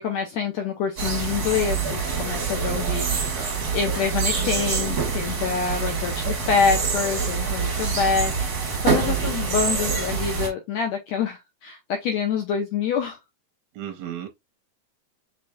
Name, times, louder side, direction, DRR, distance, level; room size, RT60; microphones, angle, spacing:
voice 1, 0.0-3.3 3.7-13.2, left 6 dB, 80° left, 1.5 m, -26 dB
sound 1, 1.0-10.5, right 5 dB, 50° right, 1.1 m, -25 dB
voice 2, 2.6-3.6 8.8-9.3 13.7-14.3, right 10 dB, 75° right, 1.6 m, -35 dB
5.5 x 3.3 x 2.3 m
omnidirectional pair, 4.0 m